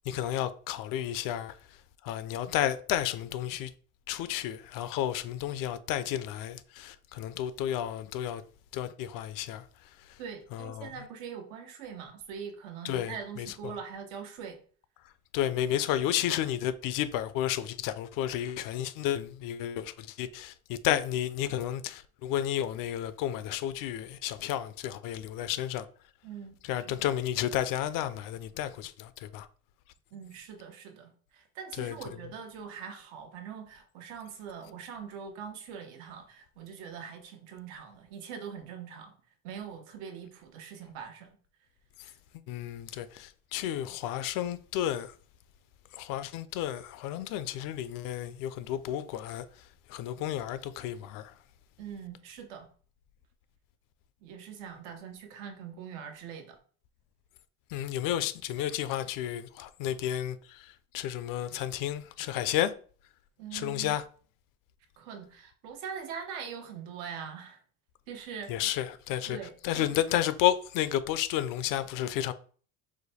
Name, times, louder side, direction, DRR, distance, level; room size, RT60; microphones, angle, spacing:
voice 1, 0.1-1.6 2.0-3.7 4.1-8.4 8.7-10.2 10.5-10.9 12.8-13.7 15.3-25.9 26.6-29.5 31.8-32.0 42.0-42.1 42.5-45.1 45.9-49.4 49.9-51.3 57.7-62.7 63.5-64.0 68.5-69.4 69.6-72.3, left 12 dB, 55° left, 0.5 m, -32 dB
voice 2, 10.2-14.6 26.2-27.0 30.1-39.2 39.4-41.3 51.8-52.7 54.2-56.6 63.4-63.9 65.0-67.6 68.1-68.7 69.3-70.0, right 7 dB, 75° right, 1.1 m, -43 dB
5.0 x 2.2 x 4.1 m
supercardioid pair, 120°, 39 cm